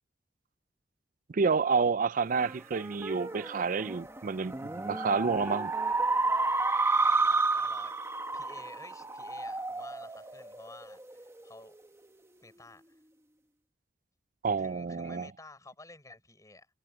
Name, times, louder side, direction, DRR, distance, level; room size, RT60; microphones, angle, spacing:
voice 1, 1.3-5.7 14.4-15.3, right 5 dB, 50° right, 0.5 m, -29 dB
sound 1, 2.4-11.2, right 3 dB, 15° right, 1.4 m, -31 dB
voice 2, 7.0-7.9 8.3-11.8 12.4-13.0 14.6-16.7, left 2 dB, 20° left, 4.8 m, -52 dB
head